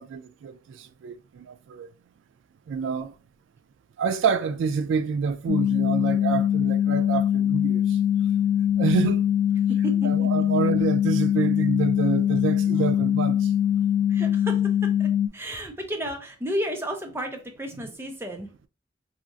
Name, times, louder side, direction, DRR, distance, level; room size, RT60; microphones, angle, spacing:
voice 1, 0.0-1.9 2.7-3.1 4.0-8.0 8.8-9.2 10.0-13.5, right 6 dB, 85° right, 0.3 m, -27 dB
sound 1, 5.5-15.3, left 10 dB, 80° left, 0.5 m, -22 dB
voice 2, 9.8-10.3 14.1-14.6 15.0-18.7, equal, 15° right, 0.6 m, -32 dB
4.1 x 2.4 x 2.3 m
head